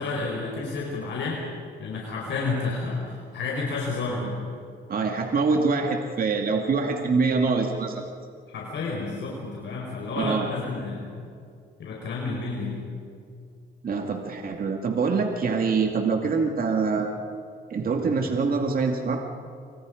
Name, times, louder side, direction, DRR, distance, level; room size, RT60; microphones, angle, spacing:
voice 1, 0.0-1.4 1.8-4.3 8.5-11.1 11.8-12.8, left 3 dB, 65° left, -2 dB, 4.8 m, -30 dB
voice 2, 4.9-8.0 10.2-10.5 13.8-17.2 17.7-19.2, right 4 dB, 45° right, 3 dB, 2.3 m, -25 dB
27.5 x 25.5 x 5.1 m, 2.3 s
cardioid pair, 90°, 20 cm